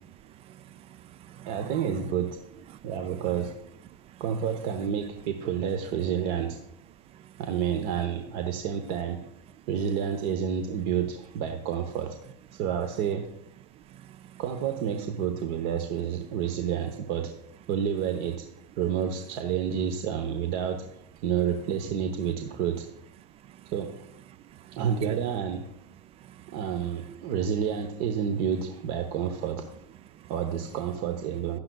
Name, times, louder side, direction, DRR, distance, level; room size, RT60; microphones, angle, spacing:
voice 1, 0.4-1.7 13.9-14.4 24.5-25.2 26.2-26.6 30.1-30.3, right 11 dB, 30° right, 0.3 m, -45 dB
voice 2, 1.5-2.4 2.8-3.6 4.2-6.6 7.4-9.2 9.7-12.2 12.5-13.3 14.4-17.3 17.7-18.5 18.8-20.9 21.2-22.9 23.7-24.0 24.7-25.7 26.5-29.7 30.3-31.6, right 8 dB, 50° right, 0.9 m, -29 dB
11.5 x 9.7 x 2.3 m
hypercardioid pair, 105°, 21 cm